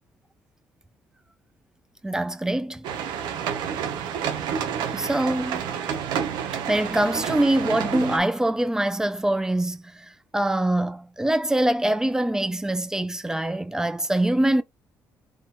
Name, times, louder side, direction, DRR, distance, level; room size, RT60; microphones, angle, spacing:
voice 1, 2.0-2.9 4.9-5.7 6.7-14.6, right 1 dB, 10° right, 0.5 m, -24 dB
sound 1, 2.8-8.2, right 8 dB, 90° right, 0.8 m, -29 dB
3.7 x 2.4 x 4.2 m
cardioid pair, 100°, 7 cm